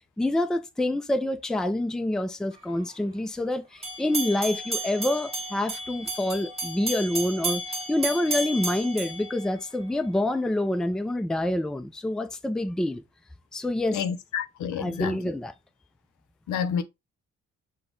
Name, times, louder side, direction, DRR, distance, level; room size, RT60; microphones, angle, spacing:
voice 1, 0.2-7.6 7.9-13.0 13.5-14.0 14.8-15.5, left 1 dB, ahead, 0.4 m, -27 dB
sound 1, 3.8-10.1, right 2 dB, 20° right, 1.4 m, -33 dB
voice 2, 13.9-15.2 16.5-16.8, left 7 dB, 75° left, 0.7 m, -29 dB
6.1 x 2.2 x 3.7 m
cardioid pair, 90°, 30 cm